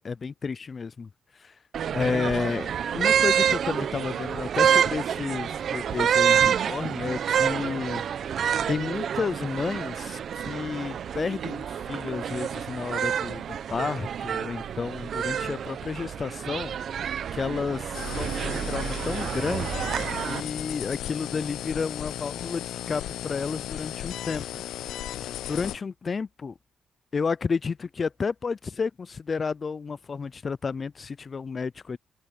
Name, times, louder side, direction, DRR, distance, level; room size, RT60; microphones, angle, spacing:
voice 1, 0.0-1.6 1.9-16.9 17.3-24.6 25.5-26.5 27.1-32.0, left 5 dB, 35° left, 0.3 m, -31 dB
sound 1, 1.7-20.4, right 8 dB, 55° right, 0.8 m, -28 dB
sound 2, 17.9-25.8, left 12 dB, 85° left, 0.5 m, -35 dB
open air
cardioid pair, 115°, 0 cm